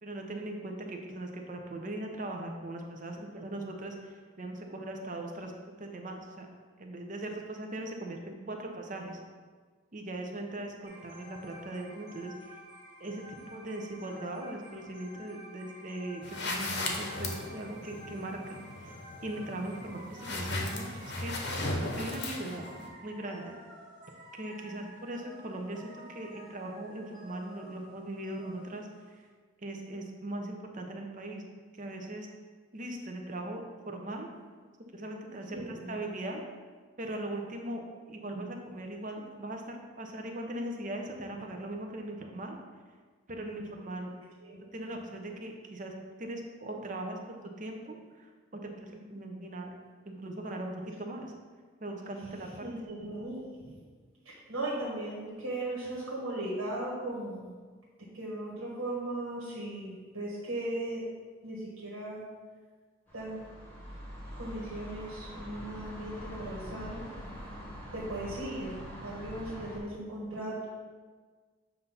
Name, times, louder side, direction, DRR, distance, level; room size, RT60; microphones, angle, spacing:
voice 1, 0.0-5.5 5.8-6.5 6.8-9.2 9.9-12.6 13.0-21.6 21.9-23.6 24.3-29.2 29.6-31.4 31.8-32.3 32.7-34.3 34.9-36.4 37.0-42.6 43.3-44.1 44.7-49.8 50.0-51.3 51.8-52.7, right 1 dB, 35° right, 3 dB, 0.7 m, -40 dB
sound 1, 10.8-29.2, equal, 20° right, 1.2 m, -51 dB
sound 2, 16.2-22.9, left 2 dB, 55° left, 0.8 m, -37 dB
voice 2, 35.5-35.9 44.4-44.6 52.6-53.8 54.2-57.5 58.1-61.0 61.4-62.2 63.1-63.4 64.3-67.0 67.9-70.7, right 1 dB, 85° right, -5 dB, 1.5 m, -37 dB
sound 3, 63.1-69.8, equal, 10° left, 1.1 m, -44 dB
7.8 x 2.6 x 5.5 m, 1.5 s
head